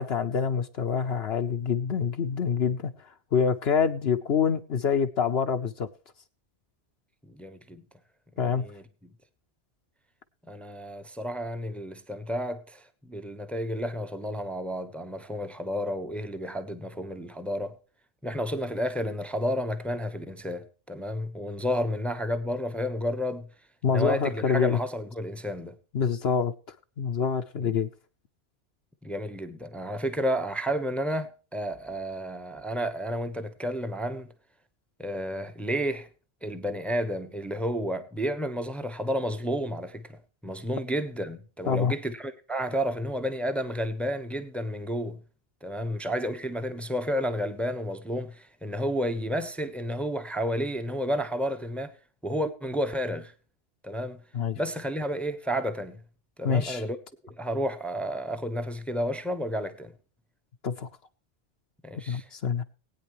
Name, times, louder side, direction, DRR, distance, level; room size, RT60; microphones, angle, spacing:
voice 1, 0.0-2.9 3.3-5.9 8.4-8.6 23.8-24.8 25.9-26.5 27.0-27.9 41.7-41.9 54.3-54.6 56.4-56.8 60.6-60.9 62.1-62.6, left 6 dB, 65° left, 1.0 m, -26 dB
voice 2, 7.2-7.8 8.4-8.8 10.5-17.8 18.2-23.5 23.9-25.8 27.6-27.7 29.0-34.3 35.0-36.1 36.4-40.2 40.4-45.2 45.6-51.9 52.2-53.3 53.8-54.2 54.6-56.0 56.4-57.0 57.4-59.9 61.8-62.3, equal, ahead, 1.0 m, -31 dB
20.0 x 9.3 x 3.1 m
omnidirectional pair, 1.2 m